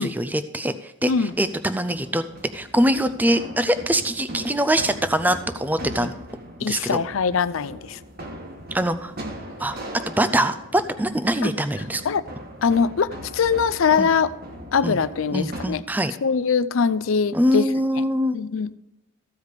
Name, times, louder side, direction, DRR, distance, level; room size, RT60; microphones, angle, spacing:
voice 1, 0.0-2.2 2.5-6.1 6.7-7.0 8.7-9.1 9.6-9.8 10.1-12.0 14.0-14.1 14.8-15.0 15.3-16.1 17.3-18.4, equal, 10° right, 10 dB, 0.4 m, -23 dB
sound 1, 1.0-15.7, equal, 45° right, 1.3 m, -39 dB
voice 2, 6.6-8.0 11.4-11.5 12.0-12.2 12.6-14.3 14.7-15.8 16.2-17.6 18.3-18.7, left 6 dB, 75° left, 15 dB, 0.5 m, -22 dB
14.5 x 5.0 x 6.6 m, 0.88 s
head